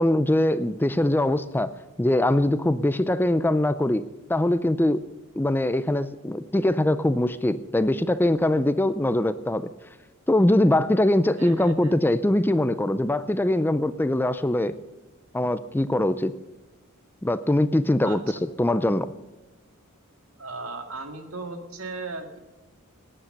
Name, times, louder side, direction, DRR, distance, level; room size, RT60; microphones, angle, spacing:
voice 1, 0.0-1.7 2.0-4.0 4.3-5.0 5.4-9.7 10.3-14.8 15.3-16.3 17.2-19.1, left 1 dB, 10° left, 13 dB, 0.4 m, -22 dB
voice 2, 11.4-11.9 18.0-18.2 20.4-22.4, right 3 dB, 75° right, 6 dB, 2.0 m, -37 dB
17.5 x 10.0 x 6.5 m, 1.1 s
head